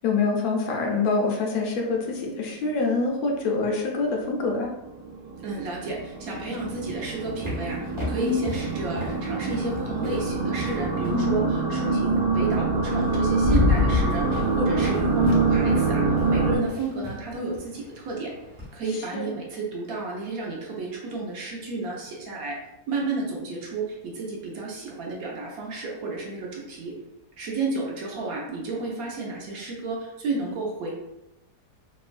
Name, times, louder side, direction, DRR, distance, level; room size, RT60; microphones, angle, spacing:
voice 1, 0.0-4.7 8.2-8.5 11.1-11.5 18.9-19.3, left 4 dB, 70° left, 0 dB, 1.0 m, -26 dB
sound 1, 1.9-3.0 3.3-3.4 3.9-4.0 4.4-16.6, right 3 dB, 90° right, 1.2 m, -26 dB
voice 2, 5.4-18.3 18.7-22.6 22.9-26.9 27.4-30.9, right 3 dB, 65° right, -2 dB, 1.0 m, -31 dB
sound 2, 6.8-11.3 12.6-12.7 13.1-18.7, left 3 dB, 25° right, 0.6 m, -30 dB
3.0 x 2.1 x 2.4 m, 0.91 s
omnidirectional pair, 1.8 m